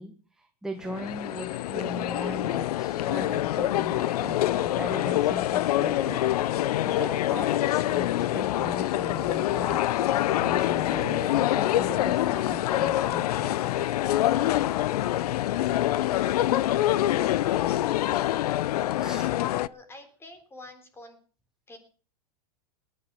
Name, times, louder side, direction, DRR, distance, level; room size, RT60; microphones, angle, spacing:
voice 1, 0.0-13.9 18.9-19.3, equal, 5° right, 6 dB, 1.3 m, -39 dB
sound 1, 0.8-19.7, left 14 dB, 75° left, 0.7 m, -25 dB
voice 2, 19.4-21.2 21.7-21.8, left 1 dB, 10° left, 8 dB, 3.8 m, -47 dB
19.0 x 10.0 x 7.0 m, 0.42 s
supercardioid pair, 140°, 20 cm